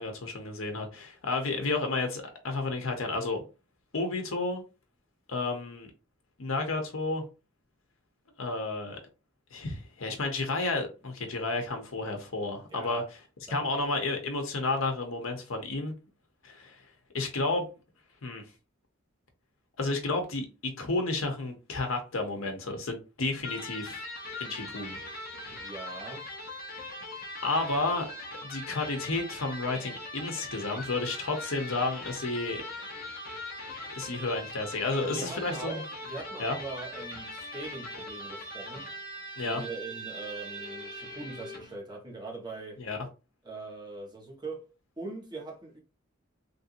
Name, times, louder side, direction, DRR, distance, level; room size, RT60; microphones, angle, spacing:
voice 1, 0.0-3.4 3.9-4.6 5.3-5.9 6.4-7.2 8.4-9.0 9.5-13.0 13.5-15.9 16.4-16.8 17.1-17.7 18.2-18.4 19.8-24.0 24.4-25.0 27.4-28.1 28.4-32.6 33.9-35.8 36.4-36.6 39.4-39.6 42.8-43.0, left 3 dB, 85° left, 0.9 m, -31 dB
voice 2, 12.7-13.1 13.5-13.7 25.5-26.2 35.0-38.9 39.4-42.8 43.4-44.7 45.0-45.8, right 3 dB, 20° right, 1.2 m, -41 dB
Electric guitar, 23.4-41.8, left 1 dB, 50° left, 1.0 m, -41 dB
3.3 x 2.7 x 2.6 m
head